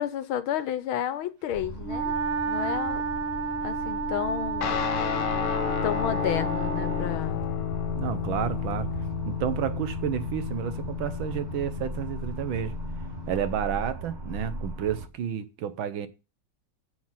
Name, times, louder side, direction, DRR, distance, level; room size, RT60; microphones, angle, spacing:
voice 1, 0.0-2.2 2.5-3.0 3.6-4.8 5.8-7.4, left 10 dB, 70° left, 1.6 m, -31 dB
sound 1, 1.5-15.1, right 2 dB, 30° right, 0.8 m, -37 dB
Wind instrument woodwind instrument, 1.8-7.2, right 4 dB, 90° right, 2.3 m, -31 dB
Guitar, 4.6-13.4, left 12 dB, 90° left, 1.7 m, -32 dB
voice 2, 7.9-8.9 9.3-12.8 13.3-16.1, right 9 dB, 70° right, 1.5 m, -31 dB
7.4 x 6.3 x 7.3 m
omnidirectional pair, 2.4 m